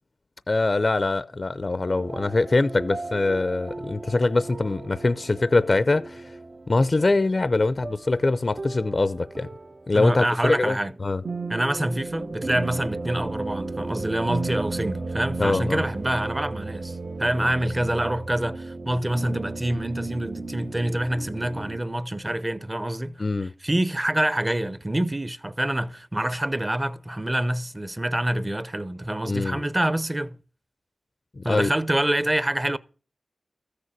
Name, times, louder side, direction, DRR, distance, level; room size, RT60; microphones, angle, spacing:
voice 1, 0.5-6.4 6.7-9.5 9.9-11.2 15.4-15.8 23.2-23.5 29.3-29.6 31.4-31.7, left 3 dB, 45° left, 0.5 m, -23 dB
sound 1, 1.9-21.8, right 3 dB, 60° right, 1.0 m, -36 dB
sound 2, 8.1-8.4 8.6-8.7 11.2-22.6, right 2 dB, 90° right, 2.1 m, -40 dB
voice 2, 9.9-10.9 11.5-23.2 23.6-30.4 31.4-32.8, right 1 dB, 20° right, 0.8 m, -26 dB
14.0 x 6.6 x 7.5 m
cardioid pair, 50°, 0 cm